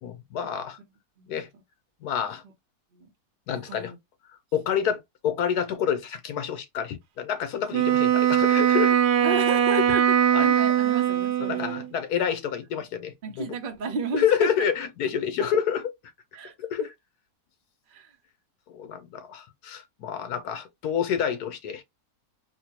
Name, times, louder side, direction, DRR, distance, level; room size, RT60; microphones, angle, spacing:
voice 1, 0.0-0.8 1.3-1.5 2.0-2.4 3.5-3.9 4.5-9.2 9.8-9.9 10.3-10.5 11.4-13.5 14.1-15.9 16.6-16.9 18.7-21.8, left 8 dB, 75° left, 1.3 m, -28 dB
voice 2, 3.5-4.0 9.2-10.0 10.4-11.9 13.2-14.5 16.3-16.5 17.9-18.1, right 4 dB, 45° right, 0.7 m, -33 dB
Wind instrument woodwind instrument, 7.7-11.9, right 10 dB, 85° right, 1.2 m, -21 dB
4.2 x 2.2 x 2.8 m
omnidirectional pair, 1.7 m